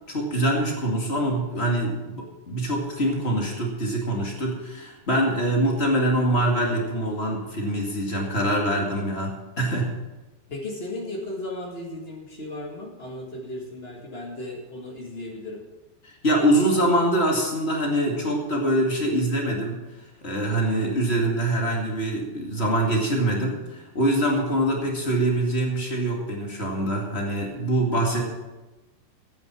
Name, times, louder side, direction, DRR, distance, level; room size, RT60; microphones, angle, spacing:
voice 1, 0.1-9.9 16.0-19.8 20.2-28.4, right 1 dB, 35° left, -1 dB, 1.1 m, -24 dB
voice 2, 10.5-15.6 28.0-28.3, left 1 dB, 65° left, -2 dB, 0.6 m, -35 dB
15.5 x 9.1 x 6.2 m, 1.1 s
omnidirectional pair, 5.0 m